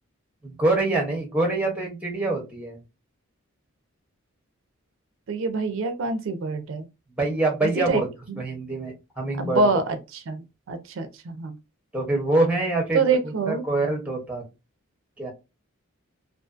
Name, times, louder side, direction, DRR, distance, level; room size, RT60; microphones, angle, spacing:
voice 1, 0.4-2.8 7.2-8.1 8.4-9.6 11.9-13.0 13.5-14.4 15.2-15.3, right 2 dB, 5° right, 0.7 m, -25 dB
voice 2, 5.3-6.9 7.6-8.0 8.3-8.4 9.4-11.6 12.9-13.6, right 4 dB, 70° right, 0.4 m, -26 dB
2.4 x 2.4 x 2.4 m
head